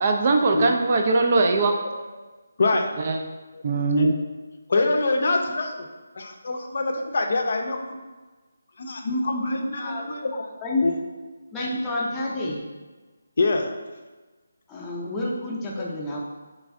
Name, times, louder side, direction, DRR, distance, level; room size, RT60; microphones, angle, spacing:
voice 1, 0.0-1.8 3.0-3.2 3.6-4.1, right 3 dB, 40° right, 3 dB, 0.4 m, -21 dB
voice 2, 4.7-5.9 6.2-8.0 8.8-10.3 10.8-11.0 13.4-13.7 15.8-15.9, left 2 dB, 55° left, 3 dB, 0.5 m, -24 dB
voice 3, 11.5-12.6 14.7-16.2, left 2 dB, 10° left, -5 dB, 0.6 m, -29 dB
3.3 x 3.1 x 3.6 m, 1.3 s
figure-of-eight pair, 165°, 0 cm